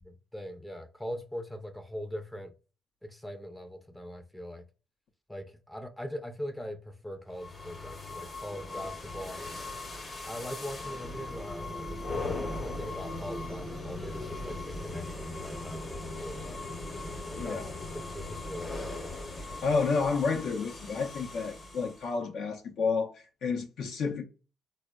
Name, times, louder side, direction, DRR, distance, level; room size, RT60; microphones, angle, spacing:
voice 1, 0.0-2.5 3.0-4.6 5.3-9.4 10.2-16.6 17.3-19.1, equal, 10° left, 0.4 m, -41 dB
sound 1, 7.3-22.1, left 2 dB, 35° left, 0.8 m, -39 dB
voice 2, 17.4-17.7 19.6-24.2, left 4 dB, 75° left, 0.5 m, -30 dB
4.1 x 2.0 x 2.2 m
cardioid pair, 90°, 0 cm